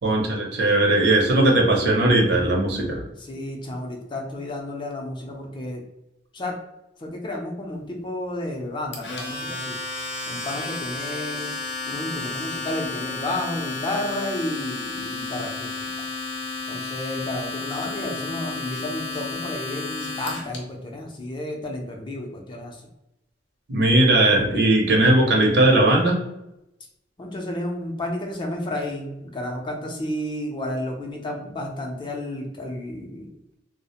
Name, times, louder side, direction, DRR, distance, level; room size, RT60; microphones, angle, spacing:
voice 1, 0.0-3.0 23.7-26.2, right 1 dB, 65° right, 1 dB, 0.6 m, -18 dB
voice 2, 3.2-5.8 6.3-6.6 7.0-9.8 10.3-11.5 11.9-15.7 16.7-22.9 27.2-33.3, left 1 dB, 25° left, 1 dB, 0.4 m, -31 dB
Domestic sounds home sounds, 8.9-20.6, left 3 dB, 75° left, 0.6 m, -32 dB
2.3 x 2.0 x 2.8 m, 0.88 s
head